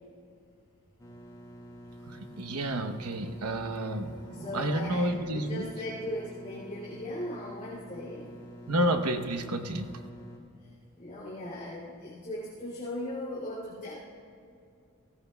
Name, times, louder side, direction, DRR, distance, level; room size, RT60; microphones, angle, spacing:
sound 1, 1.0-10.4, equal, 20° left, 2.1 m, -47 dB
voice 1, 2.1-5.7 8.7-10.0, right 1 dB, 90° right, 7 dB, 1.0 m, -30 dB
voice 2, 4.3-8.4 11.0-14.0, left 1 dB, 35° left, -9 dB, 2.7 m, -38 dB
19.0 x 16.0 x 2.3 m, 2.5 s
head